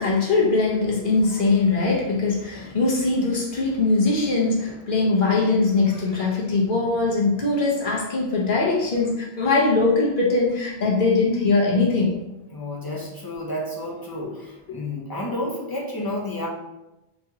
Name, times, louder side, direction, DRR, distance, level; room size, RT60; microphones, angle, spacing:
voice 1, 0.0-12.2, left 3 dB, 55° left, -3 dB, 1.0 m, -21 dB
voice 2, 12.5-16.5, left 1 dB, 25° left, -3 dB, 0.5 m, -31 dB
3.1 x 3.0 x 3.5 m, 0.94 s
omnidirectional pair, 1.1 m